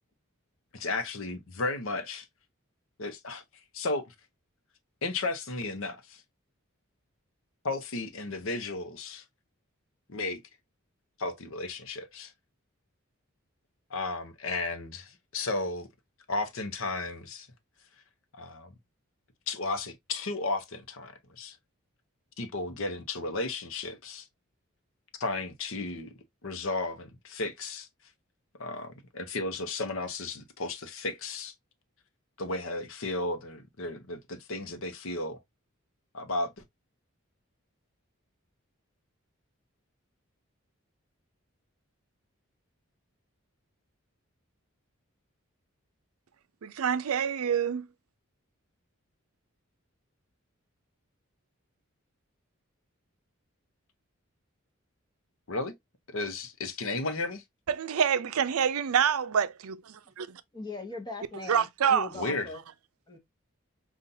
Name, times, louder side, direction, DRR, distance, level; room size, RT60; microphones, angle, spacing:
voice 1, 0.7-2.3 3.0-3.4 3.7-4.1 5.0-6.2 7.6-9.2 10.1-10.4 11.2-12.3 13.9-15.9 16.3-17.5 18.3-18.7 19.5-21.6 22.4-24.3 25.2-26.1 26.4-27.9 28.6-31.5 32.4-35.4 36.1-36.5 55.5-55.7 56.1-57.4 62.1-62.5, left 3 dB, 65° left, 0.8 m, -34 dB
voice 2, 46.6-47.9 57.7-60.4 61.5-62.1, right 7 dB, 85° right, 0.5 m, -27 dB
voice 3, 60.5-62.6 63.1-63.2, left 3 dB, 20° left, 0.9 m, -40 dB
5.4 x 2.4 x 2.7 m
head